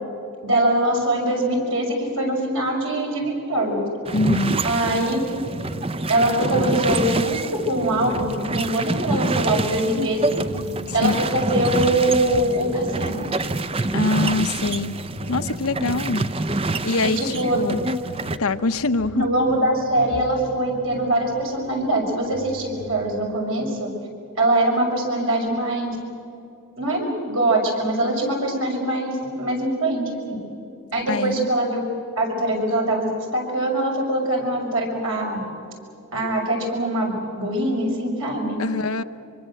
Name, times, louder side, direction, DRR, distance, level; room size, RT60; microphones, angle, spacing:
voice 1, 0.4-3.9 4.6-5.2 6.1-10.3 10.9-13.2 17.0-17.6 19.1-23.9 24.4-26.0 26.8-30.4 30.9-31.8 32.2-33.0 33.3-35.4 36.1-38.6, right 1 dB, 65° right, 0 dB, 6.5 m, -23 dB
voice 2, 4.1-4.6 11.0-11.1 13.9-14.9 15.3-16.3 16.8-17.8 18.4-19.3 31.1-31.5 38.6-39.0, left 3 dB, 80° left, 9 dB, 0.9 m, -23 dB
sound 1, 4.1-18.4, right 2 dB, 25° right, 0.6 m, -27 dB
sound 2, 8.0-23.4, left 1 dB, 45° right, 3.0 m, -41 dB
25.0 x 24.5 x 7.8 m, 2.7 s
head